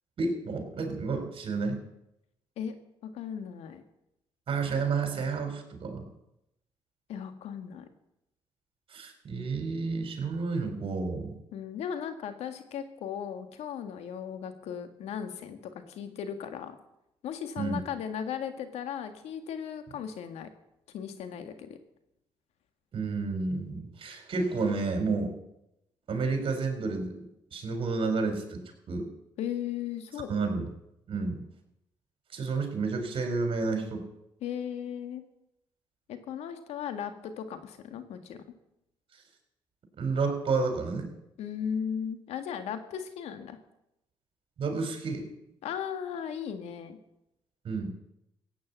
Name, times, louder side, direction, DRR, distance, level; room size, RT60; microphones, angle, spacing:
voice 1, 0.2-1.8 4.5-6.1 8.9-11.4 17.6-17.8 22.9-25.3 26.1-27.2 27.5-29.1 30.3-30.7 31.1-31.4 32.3-34.1 40.0-41.1 44.6-45.2 47.6-47.9, right 4 dB, 55° right, 5 dB, 4.2 m, -30 dB
voice 2, 3.1-3.8 7.1-7.9 11.5-15.6 15.9-16.8 17.2-20.5 20.9-21.8 29.4-30.6 34.4-35.2 36.1-38.4 41.4-43.6 45.6-47.0, left 8 dB, 80° left, 8 dB, 1.9 m, -36 dB
16.0 x 8.8 x 8.3 m, 0.84 s
cardioid pair, 75°, 11 cm